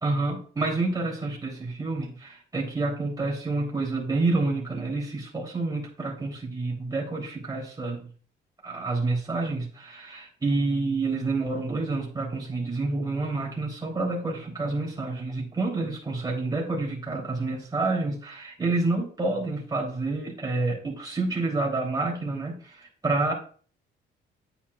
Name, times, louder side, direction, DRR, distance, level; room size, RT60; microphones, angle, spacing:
voice 1, 0.0-8.1 8.6-23.3, right 3 dB, 20° right, -3 dB, 2.9 m, -28 dB
8.9 x 8.4 x 2.3 m, 0.42 s
cardioid pair, 90°, 20 cm